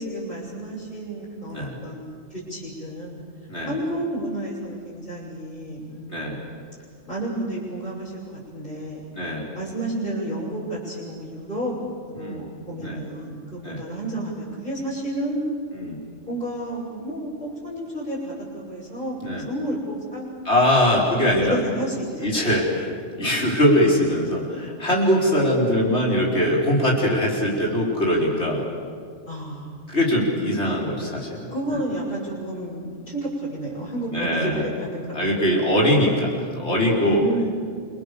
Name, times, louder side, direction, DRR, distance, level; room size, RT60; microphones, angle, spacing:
voice 1, 0.0-3.2 3.7-6.5 7.1-9.0 9.5-11.8 12.1-15.4 16.3-20.3 20.6-20.7 21.4-22.3 29.2-29.9 30.9-31.0 31.5-34.5 34.8-35.3 37.0-37.5, right 1 dB, 45° left, -8 dB, 6.6 m, -31 dB
voice 2, 9.1-9.5 12.1-12.5 12.8-13.0 13.6-13.8 15.7-16.0 19.2-19.5 20.5-21.6 22.2-28.6 29.9-31.5 34.1-34.6 35.1-37.2, equal, 65° left, -3 dB, 5.2 m, -22 dB
29.0 x 25.5 x 7.0 m, 2.1 s
omnidirectional pair, 1.2 m